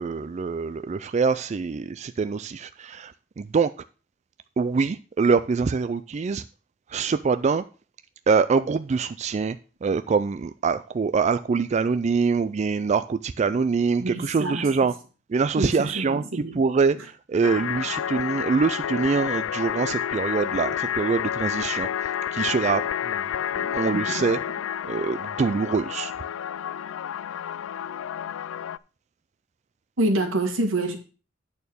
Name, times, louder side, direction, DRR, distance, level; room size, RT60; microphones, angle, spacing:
voice 1, 0.0-3.7 4.6-6.4 6.9-7.6 8.3-14.9 15.3-24.4 24.8-26.1, right 5 dB, 35° right, 12 dB, 0.3 m, -24 dB
voice 2, 14.0-14.7 15.6-16.6 23.9-24.3 30.0-31.0, right 2 dB, 90° right, 5 dB, 1.9 m, -27 dB
sound 1, 17.4-28.8, left 9 dB, 85° left, 0.3 m, -30 dB
9.1 x 4.3 x 6.8 m, 0.36 s
head